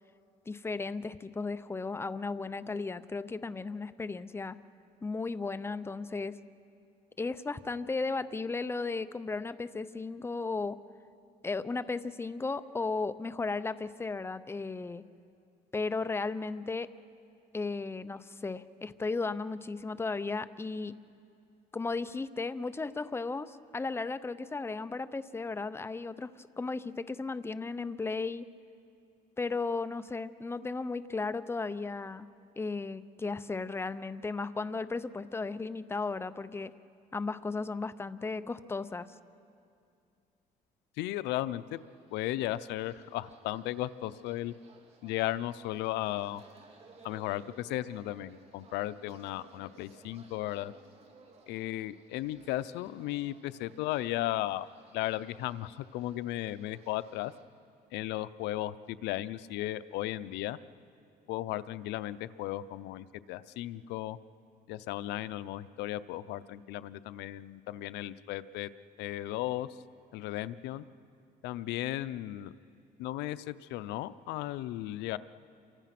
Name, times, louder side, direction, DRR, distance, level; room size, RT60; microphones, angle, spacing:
voice 1, 0.5-4.6 5.0-6.4 7.2-10.8 11.4-15.0 15.7-16.9 17.5-20.9 21.7-28.5 29.4-32.3 32.6-36.7 37.1-39.1, left 3 dB, 15° left, 13 dB, 0.6 m, -35 dB
voice 2, 41.0-41.8 42.1-44.5 45.0-46.4 47.0-50.7 51.5-54.7 54.9-57.3 57.9-60.6 61.3-64.2 64.7-68.7 69.0-69.7 70.1-70.8 71.4-72.5 73.0-75.2, left 15 dB, 90° left, 15 dB, 0.6 m, -35 dB
sound 1, 41.6-57.4, right 4 dB, 40° right, 3.0 m, -59 dB
28.5 x 24.0 x 6.0 m, 2.5 s
cardioid pair, 110°, 17 cm